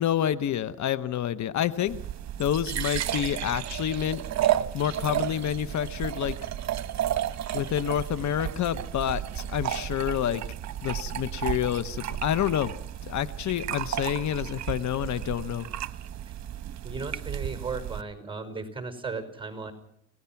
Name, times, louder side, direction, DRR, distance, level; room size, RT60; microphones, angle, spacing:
voice 1, 0.0-2.0 2.4-4.2 4.5-6.4 7.5-10.4 10.8-12.8 13.0-15.7, left 10 dB, 70° left, 14 dB, 1.0 m, -28 dB
sound 1, 1.9-18.0, right 11 dB, 65° right, 1.2 m, -32 dB
voice 2, 16.8-19.7, right 4 dB, 15° right, 8 dB, 5.4 m, -36 dB
29.5 x 18.0 x 5.9 m, 0.68 s
cardioid pair, 90°, 30 cm